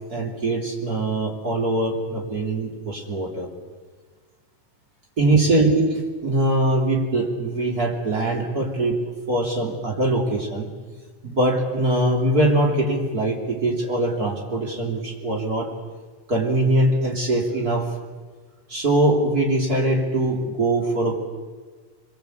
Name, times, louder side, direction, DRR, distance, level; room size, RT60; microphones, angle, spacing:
voice 1, 0.1-3.5 5.2-10.7 11.2-15.7 16.3-17.9 18.7-21.2, right 1 dB, 25° right, 0 dB, 3.5 m, -22 dB
26.5 x 22.0 x 8.3 m, 1.4 s
omnidirectional pair, 4.0 m